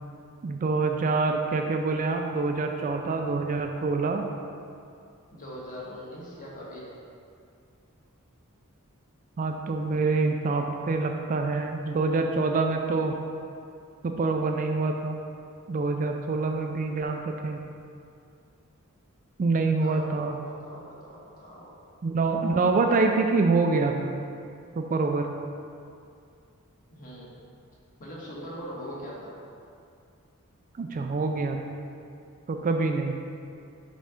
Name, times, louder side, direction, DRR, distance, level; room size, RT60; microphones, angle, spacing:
voice 1, 0.4-4.3 9.4-13.1 14.0-15.2 15.7-17.6 19.4-20.4 22.0-24.1 24.8-25.3 30.8-31.6 32.5-33.2, right 3 dB, 40° right, 4 dB, 0.3 m, -26 dB
voice 2, 5.3-7.0 19.8-21.7 26.9-27.4 28.0-29.4 32.5-32.8, equal, 40° left, -5 dB, 1.3 m, -41 dB
5.4 x 3.8 x 5.0 m, 2.4 s
head